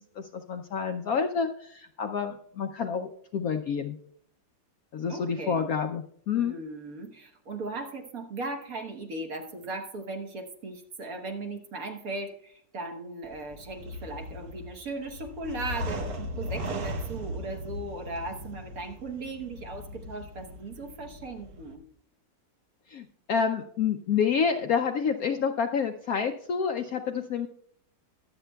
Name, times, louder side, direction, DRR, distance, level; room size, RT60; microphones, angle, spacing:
voice 1, 0.0-4.0 4.9-6.6 22.9-27.5, left 6 dB, 70° left, 6 dB, 0.9 m, -28 dB
voice 2, 5.1-5.7 6.3-21.8, right 2 dB, 55° right, 4 dB, 1.4 m, -37 dB
sound 1, 13.2-21.7, equal, 75° right, 1.8 m, -38 dB
22.0 x 8.0 x 2.2 m, 0.65 s
omnidirectional pair, 2.0 m